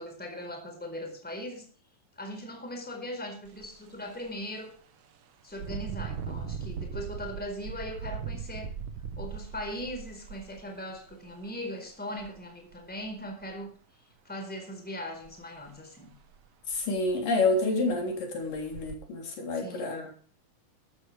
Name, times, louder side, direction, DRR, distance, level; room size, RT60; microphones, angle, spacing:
voice 1, 0.0-1.7 2.2-4.7 5.4-8.7 9.2-13.7 14.2-16.1 19.5-20.0, equal, 5° left, 3 dB, 4.0 m, -39 dB
Engine, 3.4-3.7 4.1-4.3 5.5-11.3 12.2-12.3 12.7-13.5 15.2-15.4 15.7-15.8 16.3-16.4 16.7-17.2 17.8-17.9 18.5-18.9, right 6 dB, 70° right, 1.2 m, -39 dB
voice 2, 16.7-20.1, left 2 dB, 70° left, 2 dB, 5.0 m, -28 dB
14.0 x 13.0 x 3.4 m, 0.43 s
omnidirectional pair, 4.0 m